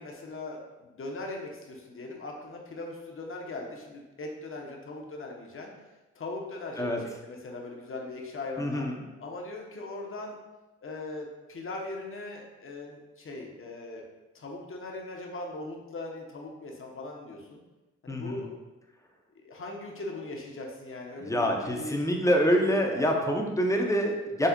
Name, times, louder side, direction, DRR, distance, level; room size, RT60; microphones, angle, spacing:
voice 1, 0.0-5.7 6.1-8.9 9.2-10.4 10.8-14.0 14.3-17.6 18.0-18.5 19.3-22.0 22.6-23.1, left 2 dB, 40° left, 0 dB, 0.8 m, -40 dB
voice 2, 8.6-9.0 18.1-18.4 21.2-24.5, equal, 10° left, 1 dB, 0.6 m, -26 dB
5.1 x 2.0 x 2.5 m, 1.1 s
supercardioid pair, 45°, 31 cm